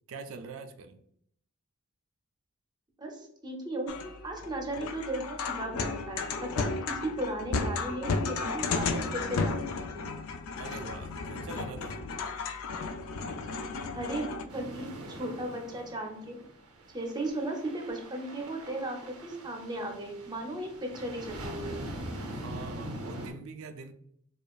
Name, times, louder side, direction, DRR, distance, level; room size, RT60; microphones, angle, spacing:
voice 1, 0.1-1.0 10.6-12.0 22.3-23.9, right 4 dB, 65° right, 8 dB, 0.4 m, -43 dB
voice 2, 3.0-4.0 4.2-10.1 13.9-16.4 16.9-21.8, right 1 dB, 20° right, 2 dB, 0.6 m, -36 dB
sound 1, 3.9-14.4, left 4 dB, 70° left, 0.4 m, -34 dB
sound 2, 14.5-23.3, right 1 dB, 90° right, 0.7 m, -42 dB
4.9 x 2.4 x 2.3 m, 0.67 s
head